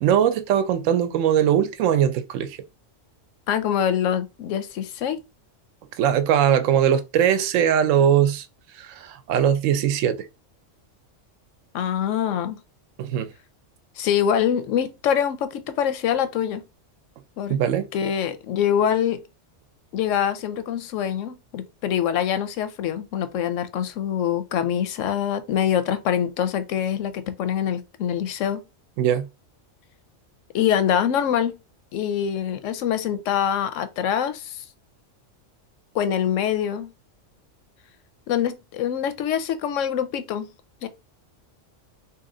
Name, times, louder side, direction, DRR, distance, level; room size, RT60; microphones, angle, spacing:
voice 1, 0.0-2.6 6.0-8.5 8.7-10.3 13.0-13.3 17.5-17.9 29.0-29.3, right 9 dB, 90° right, 0.9 m, -20 dB
voice 2, 3.5-5.2 11.7-12.6 14.0-16.6 17.4-17.6 17.9-19.2 19.9-28.6 30.5-31.6 31.9-34.6 35.9-36.9 38.3-40.5 40.8-40.9, left 9 dB, 85° left, 1.0 m, -24 dB
2.9 x 2.8 x 3.7 m
omnidirectional pair, 1.3 m